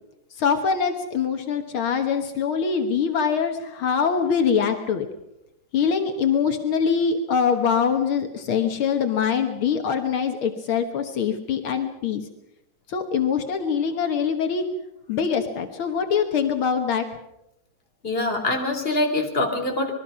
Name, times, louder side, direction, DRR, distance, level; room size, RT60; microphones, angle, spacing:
voice 1, 0.3-5.1 5.7-12.2 12.9-14.7 15.1-17.1, left 6 dB, 75° left, 5 dB, 2.2 m, -23 dB
voice 2, 18.0-19.9, left 2 dB, 25° left, 3 dB, 3.3 m, -24 dB
26.5 x 21.0 x 5.7 m, 0.86 s
omnidirectional pair, 2.3 m